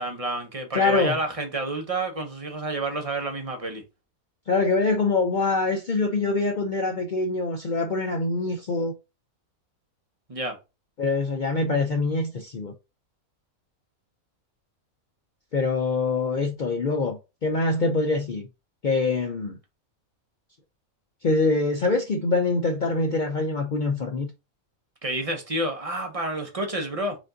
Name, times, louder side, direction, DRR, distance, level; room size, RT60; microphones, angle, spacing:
voice 1, 0.0-3.8 10.3-10.6 25.0-27.2, right 2 dB, 30° right, 0.8 m, -29 dB
voice 2, 0.7-1.2 4.5-8.9 11.0-12.7 15.5-18.5 18.8-19.6 21.2-24.3, left 3 dB, 60° left, 0.5 m, -24 dB
5.0 x 2.6 x 3.7 m
omnidirectional pair, 1.5 m